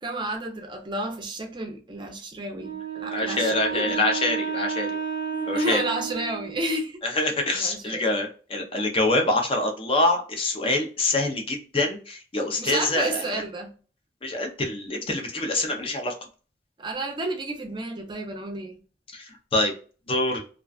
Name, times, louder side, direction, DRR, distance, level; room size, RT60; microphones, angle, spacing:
voice 1, 0.0-4.0 4.4-4.5 5.3-7.0 7.5-8.0 12.6-13.7 16.8-18.8, right 1 dB, 25° right, 0.5 m, -31 dB
Wind instrument woodwind instrument, 2.5-6.8, right 6 dB, 75° left, 1.3 m, -32 dB
voice 2, 3.1-4.9 5.5-5.8 7.0-13.4 14.2-16.1 19.1-19.7 20.1-20.4, left 2 dB, 30° left, 0.6 m, -25 dB
2.4 x 2.2 x 2.3 m
head